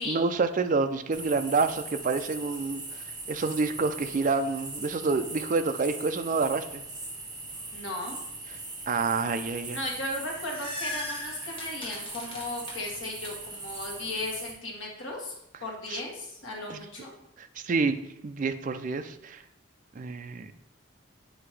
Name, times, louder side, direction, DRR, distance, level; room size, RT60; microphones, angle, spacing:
voice 1, 0.0-2.8 3.3-6.8 8.9-9.8 15.9-16.0 16.7-16.8 17.4-18.0 18.2-19.4 20.0-20.5, right 4 dB, 40° right, 9 dB, 0.3 m, -28 dB
sound 1, 1.1-14.5, right 3 dB, 20° right, 1.2 m, -40 dB
voice 2, 7.7-8.2 9.7-17.1, left 2 dB, 65° left, 0 dB, 1.5 m, -36 dB
sound 2, 10.1-13.3, left 1 dB, 25° left, 1.2 m, -39 dB
7.9 x 2.8 x 4.8 m, 0.82 s
head